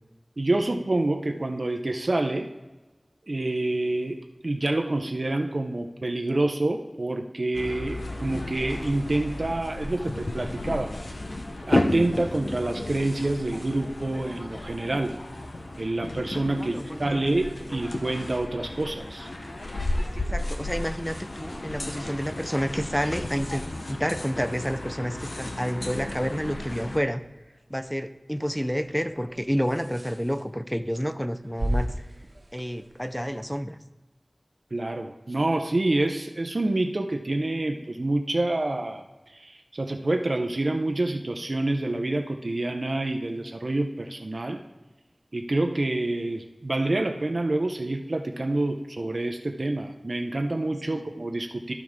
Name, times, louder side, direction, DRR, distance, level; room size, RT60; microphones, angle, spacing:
voice 1, 0.4-2.5 3.3-10.9 11.7-15.2 15.8-19.3 34.7-44.6 45.3-51.7, right 2 dB, 65° right, 4 dB, 0.6 m, -27 dB
sound 1, 7.5-27.0, left 1 dB, 85° left, 0.7 m, -33 dB
voice 2, 16.6-17.2 20.0-23.6 23.9-27.2 27.7-32.0 32.5-33.8 50.9-51.0, equal, 5° left, 10 dB, 0.5 m, -29 dB
sound 2, 25.3-33.6, equal, 85° right, 1.3 m, -38 dB
13.5 x 4.6 x 3.6 m, 1.1 s
wide cardioid pair, 50°, 0 cm